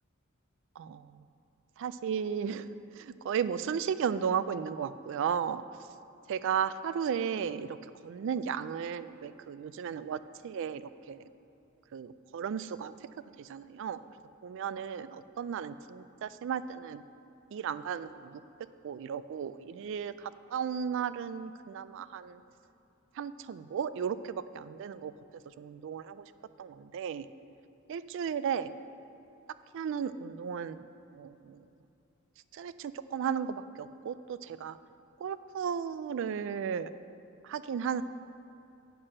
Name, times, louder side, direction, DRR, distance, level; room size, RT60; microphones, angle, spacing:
voice 1, 0.8-1.2 1.8-2.7 2.9-5.6 6.3-7.8 8.0-11.3 11.9-13.1 13.4-14.0 14.4-17.0 17.5-18.4 18.8-22.4 23.1-25.1 25.6-26.2 26.6-27.3 27.9-28.7 29.7-31.6 32.5-34.8 35.2-36.9 37.4-38.0, right 7 dB, 60° right, 13 dB, 0.3 m, -35 dB
8.0 x 5.8 x 6.4 m, 2.8 s
head